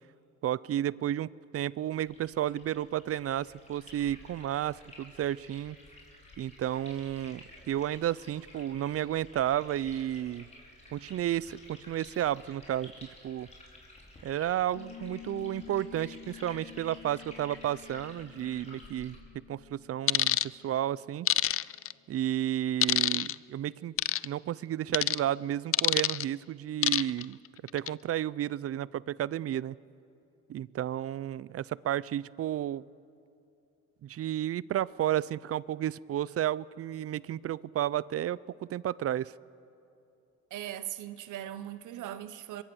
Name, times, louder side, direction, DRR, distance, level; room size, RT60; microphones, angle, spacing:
voice 1, 0.4-5.8 6.4-10.4 10.9-12.9 13.2-13.5 14.2-21.3 22.1-23.9 24.2-27.4 27.7-29.8 30.5-32.8 34.0-39.3, right 12 dB, 50° right, 0.5 m, -32 dB
sound 1, 1.9-19.2, left 1 dB, 20° left, 5.1 m, -53 dB
sound 2, 14.7-21.7, left 11 dB, 75° left, 2.0 m, -50 dB
sound 3, 20.1-20.5 21.3-21.9 22.8-23.3 24.0-24.3 24.9-25.2 25.7-26.2 26.8-27.2 27.7-27.9, left 12 dB, 50° left, 0.4 m, -26 dB
voice 2, 40.5-42.6, right 12 dB, 80° right, 1.0 m, -39 dB
23.5 x 21.5 x 7.0 m
cardioid pair, 90°, 30 cm